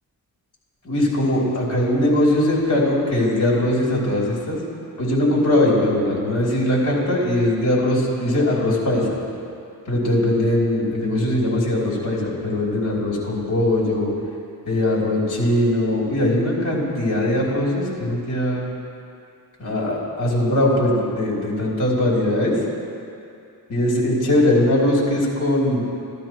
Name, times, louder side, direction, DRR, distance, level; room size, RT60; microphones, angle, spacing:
voice 1, 0.8-4.6 5.0-9.1 9.9-14.1 14.6-18.7 19.6-22.6 23.7-25.8, left 1 dB, 55° left, -5 dB, 3.0 m, -20 dB
14.5 x 12.0 x 3.0 m, 2.6 s
wide cardioid pair, 115°, 37 cm